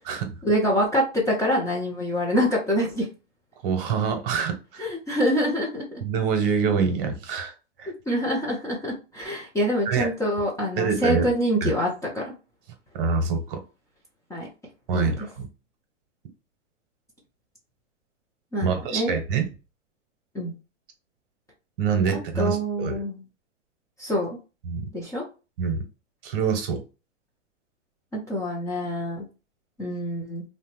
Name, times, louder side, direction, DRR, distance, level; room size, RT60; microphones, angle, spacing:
voice 1, 0.4-3.1 4.8-6.0 8.1-11.9 12.1-12.3 14.3-14.5 14.9-15.1 18.5-19.1 20.3-20.5 22.3-23.2 24.0-24.4 24.9-25.2 28.1-29.3 29.8-30.4, equal, 10° left, 0.5 m, -25 dB
voice 2, 3.6-4.9 6.0-7.5 7.8-7.9 9.9-10.1 10.8-11.2 11.6-11.7 12.9-13.6 14.9-15.5 18.6-19.5 21.8-23.0 24.7-24.9 25.6-25.8 26.2-26.8, right 6 dB, 50° right, 0.9 m, -25 dB
2.8 x 2.1 x 2.9 m
hypercardioid pair, 125°, 37 cm